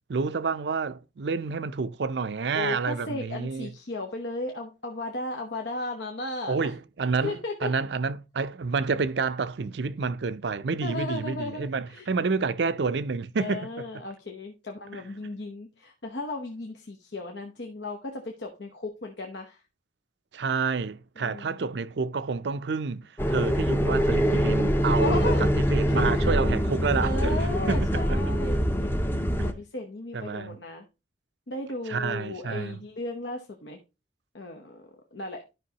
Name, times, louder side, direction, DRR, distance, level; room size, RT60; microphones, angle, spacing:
voice 1, 0.1-3.7 6.5-7.4 7.6-13.9 20.3-25.2 25.6-27.4 27.7-28.3 29.4-29.5 30.1-30.6 31.9-32.8, right 4 dB, 70° right, 0.5 m, -29 dB
voice 2, 2.5-6.7 7.2-7.7 10.8-12.1 13.4-19.6 21.2-21.7 25.0-25.5 25.8-26.3 27.0-30.9 31.5-33.8 34.3-34.8 35.1-35.4, left 2 dB, 75° left, 1.0 m, -35 dB
sound 1, 23.2-29.5, equal, 10° left, 0.6 m, -24 dB
12.5 x 5.3 x 2.9 m
head